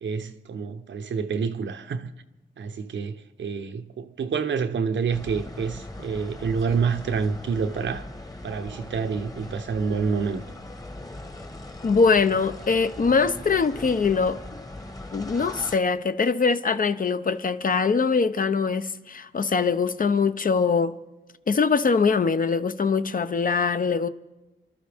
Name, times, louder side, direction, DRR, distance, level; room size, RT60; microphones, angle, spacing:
voice 1, 0.0-2.1 2.6-8.0 8.4-10.4, right 5 dB, 75° right, 0.9 m, -28 dB
sound 1, 5.1-15.8, left 1 dB, 20° left, 1.2 m, -40 dB
voice 2, 11.8-14.4 15.1-21.0 21.5-24.1, left 5 dB, 45° left, 0.7 m, -22 dB
28.5 x 12.5 x 3.5 m
cardioid pair, 80°, 19 cm